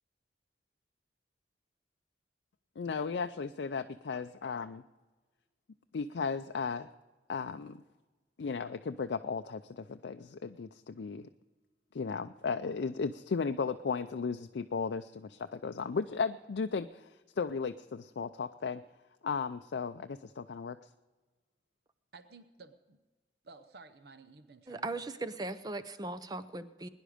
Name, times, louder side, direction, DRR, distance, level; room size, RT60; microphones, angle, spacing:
voice 1, 2.8-4.8 5.9-6.9 7.3-7.8 8.4-11.3 11.9-18.8 19.2-20.8, left 5 dB, 70° left, 7 dB, 0.4 m, -35 dB
voice 2, 22.1-23.0 23.4-25.1, right 4 dB, 60° right, 10 dB, 0.8 m, -54 dB
voice 3, 24.7-26.9, right 2 dB, 20° right, 12 dB, 0.6 m, -38 dB
22.0 x 10.5 x 5.0 m, 1.2 s
head